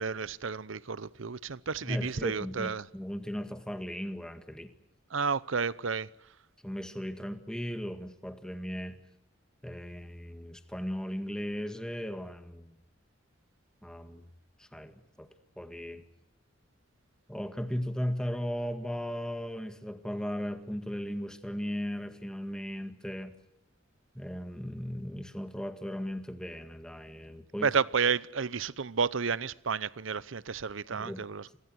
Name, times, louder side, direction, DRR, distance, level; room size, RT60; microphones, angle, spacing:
voice 1, 0.0-2.8 5.1-6.1 27.6-31.5, right 5 dB, 85° right, 0.8 m, -31 dB
voice 2, 1.8-4.7 6.6-9.0 9.6-12.7 13.8-14.2 14.6-14.9 15.2-15.3 15.6-16.0 17.3-23.3 24.1-27.7 30.9-31.2, equal, 5° left, 1.9 m, -37 dB
29.5 x 23.0 x 6.3 m
head